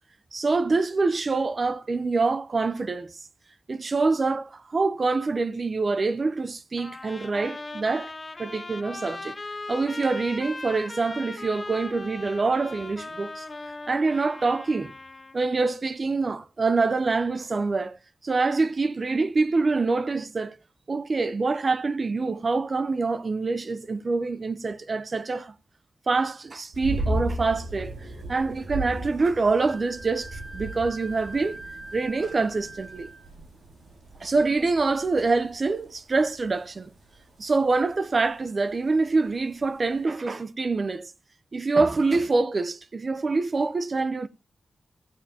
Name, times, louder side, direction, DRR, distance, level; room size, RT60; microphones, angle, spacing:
voice 1, 0.3-3.1 3.7-8.1 8.4-9.4 9.7-13.5 13.9-14.9 15.3-18.0 18.2-20.6 20.9-25.5 26.1-27.9 28.3-31.6 31.9-33.1 34.2-36.9 37.4-41.1 41.5-44.3, right 3 dB, 45° right, 0.7 m, -25 dB
Trumpet, 6.8-15.4, left 3 dB, 35° left, 1.2 m, -39 dB
sound 1, 26.7-40.0, right 1 dB, 85° right, 7.1 m, -37 dB
Wind instrument woodwind instrument, 29.6-33.4, right 2 dB, 25° right, 1.3 m, -43 dB
16.5 x 9.0 x 2.9 m
wide cardioid pair, 95°, 0 cm